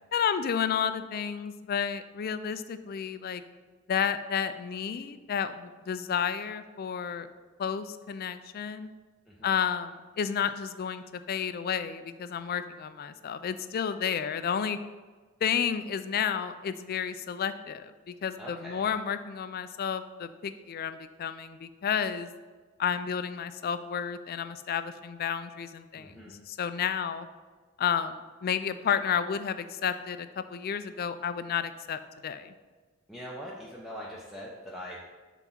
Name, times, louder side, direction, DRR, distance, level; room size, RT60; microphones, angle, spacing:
voice 1, 0.1-3.4 3.9-7.3 7.6-8.9 9.4-14.8 15.4-22.3 22.8-26.1 26.5-27.3 27.8-32.5, left 7 dB, 45° left, 12 dB, 0.3 m, -31 dB
voice 2, 18.4-18.9 25.9-26.4 33.1-35.0, equal, ahead, -5 dB, 0.6 m, -42 dB
5.9 x 4.0 x 5.7 m, 1.4 s
head